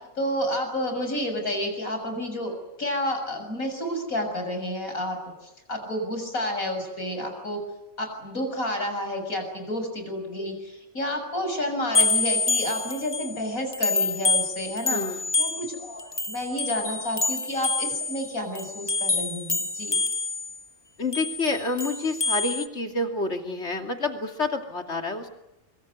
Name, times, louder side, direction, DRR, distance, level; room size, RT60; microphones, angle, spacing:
voice 1, 0.2-7.6 8.0-20.0, left 1 dB, 70° left, 5 dB, 7.3 m, -30 dB
sound 1, 11.9-13.4 13.7-20.6 21.1-22.7, left 3 dB, 20° left, 1.0 m, -27 dB
voice 2, 14.9-15.2 21.0-25.3, left 2 dB, 50° left, 5 dB, 3.1 m, -28 dB
25.0 x 24.5 x 9.6 m, 0.91 s
omnidirectional pair, 1.5 m